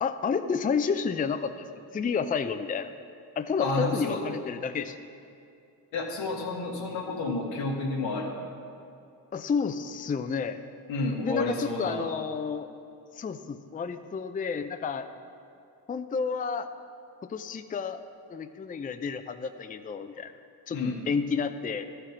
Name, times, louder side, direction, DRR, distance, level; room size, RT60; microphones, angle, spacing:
voice 1, 0.0-1.7 1.9-2.9 3.4-5.0 9.3-10.6 11.2-12.7 13.1-15.1 15.9-16.7 17.3-18.0 18.3-20.3 20.7-21.9, left 5 dB, 20° left, 9 dB, 0.4 m, -30 dB
voice 2, 3.6-4.2 5.9-8.3 10.9-12.1 20.7-21.0, left 2 dB, 85° left, 0 dB, 1.4 m, -30 dB
13.0 x 5.0 x 5.7 m, 2.5 s
supercardioid pair, 55°, 44 cm